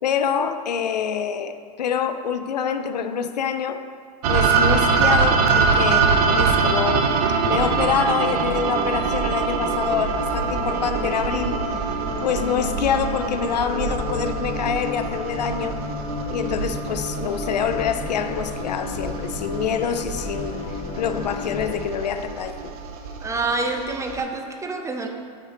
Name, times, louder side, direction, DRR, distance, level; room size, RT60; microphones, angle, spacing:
voice 1, 0.0-3.8 4.3-7.2 7.4-11.6 12.2-15.8 16.3-20.6 21.0-22.7, left 7 dB, 90° left, 9 dB, 0.5 m, -26 dB
sound 1, 4.2-24.2, right 5 dB, 65° right, 0.9 m, -24 dB
sound 2, 9.6-21.9, left 6 dB, 25° left, 0.7 m, -34 dB
voice 2, 23.2-25.1, right 3 dB, 15° right, 4 dB, 0.8 m, -27 dB
8.1 x 6.2 x 4.1 m, 2.1 s
hypercardioid pair, 105°, 20 cm